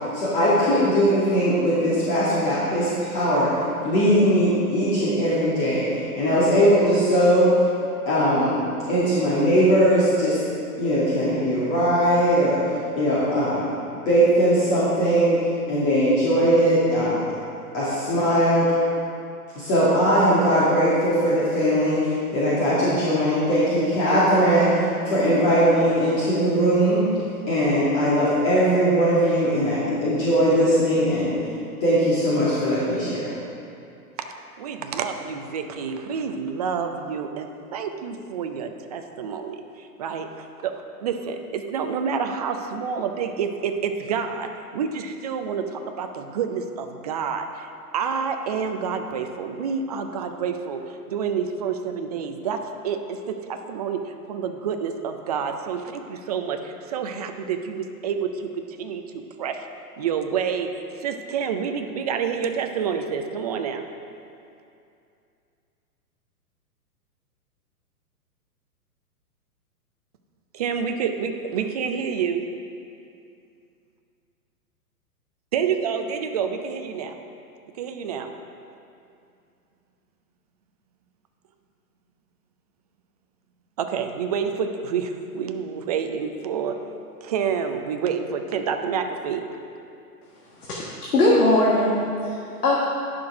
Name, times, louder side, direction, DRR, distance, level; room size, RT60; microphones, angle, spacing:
voice 1, 0.1-3.5 3.8-7.5 8.1-8.5 8.9-10.4 10.8-12.6 13.0-13.6 14.1-15.4 15.7-17.2 17.7-18.7 19.5-27.1 27.5-31.3 31.8-33.2, equal, 35° left, -10 dB, 2.4 m, -20 dB
voice 2, 34.6-59.6 60.0-63.8 70.5-72.5 75.5-77.2 77.8-78.3 83.8-86.8 87.2-89.4, right 6 dB, 30° right, 6 dB, 0.4 m, -28 dB
voice 3, 90.6-92.4 92.6-92.8, left 1 dB, 75° left, -4 dB, 1.5 m, -20 dB
10.5 x 6.2 x 4.8 m, 2.5 s
hypercardioid pair, 125°, 47 cm